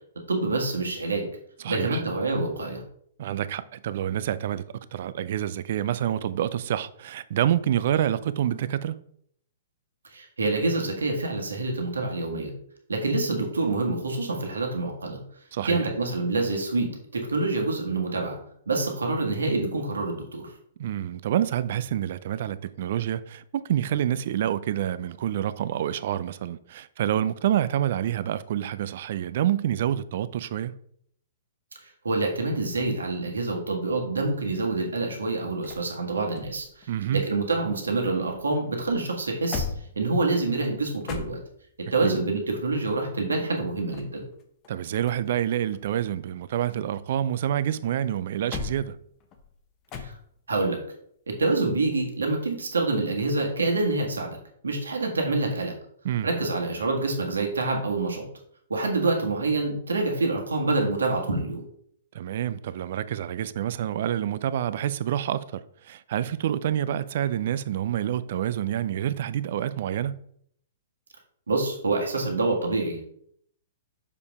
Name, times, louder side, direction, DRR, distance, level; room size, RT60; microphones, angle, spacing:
voice 1, 0.3-1.3 1.7-2.8 10.1-12.5 12.9-15.2 15.6-18.4 18.7-20.5 32.0-39.6 39.9-41.4 41.8-44.3 50.0-50.1 50.5-50.8 51.3-54.4 54.6-55.7 56.2-58.3 58.7-61.6 71.5-73.1, right 3 dB, 80° right, 1.6 m, -26 dB
voice 2, 1.6-2.0 3.2-9.0 15.5-15.8 20.8-30.8 36.9-37.3 42.0-42.1 44.7-49.0 56.0-56.3 62.1-70.2, right 11 dB, 55° right, 0.4 m, -27 dB
sound 1, 34.8-38.0 38.3-41.9 43.6-45.4 45.7-47.5 47.9-50.6 53.2-53.5, left 5 dB, 30° left, 1.0 m, -40 dB
6.6 x 5.2 x 3.5 m
figure-of-eight pair, 120°, 0 cm